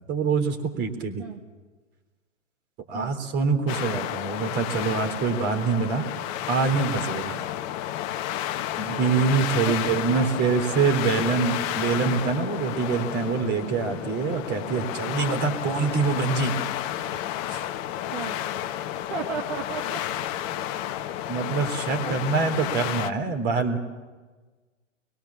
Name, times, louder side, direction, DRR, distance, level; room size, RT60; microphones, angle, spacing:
voice 1, 0.1-1.3 2.9-6.0 6.5-7.4 8.8-16.5 17.5-17.6 21.3-23.8, right 5 dB, 25° right, 6 dB, 3.7 m, -25 dB
sound 1, 3.7-23.1, left 12 dB, 30° left, 1.1 m, -31 dB
voice 2, 19.1-20.0 22.0-22.1, right 5 dB, 45° right, 2 dB, 2.2 m, -33 dB
29.5 x 22.5 x 7.3 m, 1.3 s
figure-of-eight pair, 115°, 38 cm